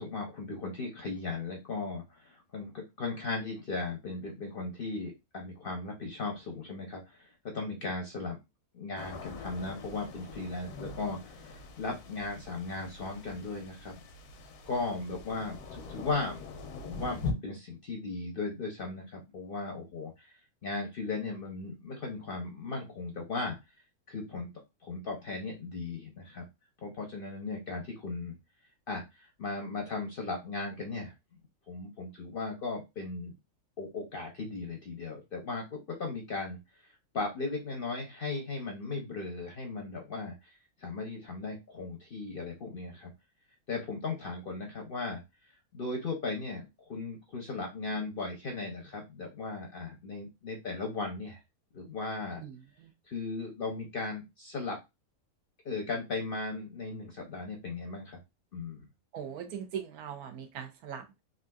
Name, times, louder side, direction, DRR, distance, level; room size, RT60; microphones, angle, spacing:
voice 1, 0.0-8.4 8.7-14.0 14.7-16.4 16.8-20.3 20.6-23.6 24.1-24.5 24.8-26.5 26.8-28.3 28.9-31.1 31.7-33.3 33.8-43.1 43.7-45.2 45.7-46.6 46.9-51.4 51.7-52.4 53.1-54.8 55.6-58.2 58.5-58.9, left 3 dB, 55° left, 1 dB, 0.6 m, -37 dB
sound 1, 9.0-17.3, left 4 dB, 85° left, 1.1 m, -43 dB
voice 2, 52.4-52.9 59.1-61.2, right 8 dB, 85° right, 6 dB, 1.2 m, -40 dB
3.5 x 2.6 x 2.2 m, 0.23 s
omnidirectional pair, 1.6 m